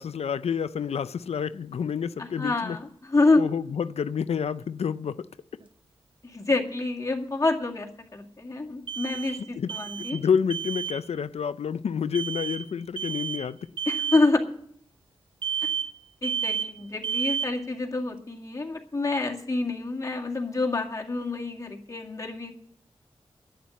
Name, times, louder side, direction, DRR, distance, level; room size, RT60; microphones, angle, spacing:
voice 1, 0.0-2.8 3.4-5.3 9.6-9.7 10.0-13.6, left 7 dB, 85° left, 0.4 m, -29 dB
voice 2, 2.2-3.4 6.2-10.2 13.9-14.4 16.2-22.5, left 3 dB, 30° left, 2.0 m, -27 dB
sound 1, 5.6-5.7 8.9-9.4 9.7-10.3 10.5-11.0 12.1-12.6 13.0-13.5 13.8-14.3 15.4-16.0 16.2-16.8 17.0-17.6, right 7 dB, 50° right, 0.6 m, -31 dB
11.0 x 9.1 x 9.3 m
wide cardioid pair, 100°, 10 cm